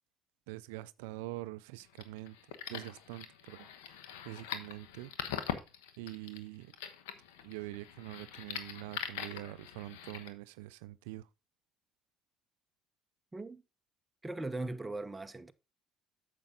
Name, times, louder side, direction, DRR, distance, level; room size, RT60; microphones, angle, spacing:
voice 1, 0.5-2.4 2.7-3.7 4.2-5.1 6.0-6.7 7.4-11.3, right 18 dB, 90° right, 0.4 m, -44 dB
sound 1, 1.8-10.3, left 10 dB, 90° left, 1.1 m, -43 dB
voice 2, 13.3-13.6 14.2-15.5, right 2 dB, 15° right, 0.9 m, -39 dB
8.7 x 6.8 x 3.8 m
supercardioid pair, 75°, 0 cm